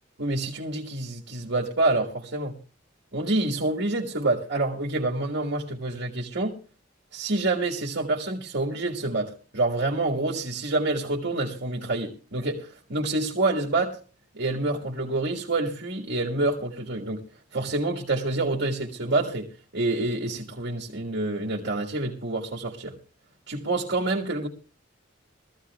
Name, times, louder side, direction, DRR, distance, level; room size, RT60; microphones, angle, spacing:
voice 1, 0.2-2.5 3.1-6.5 7.1-14.0 14.3-17.2 17.5-19.5 19.7-22.9 23.5-24.5, right 2 dB, 65° right, 1.6 m, -27 dB
21.5 x 14.5 x 2.3 m
head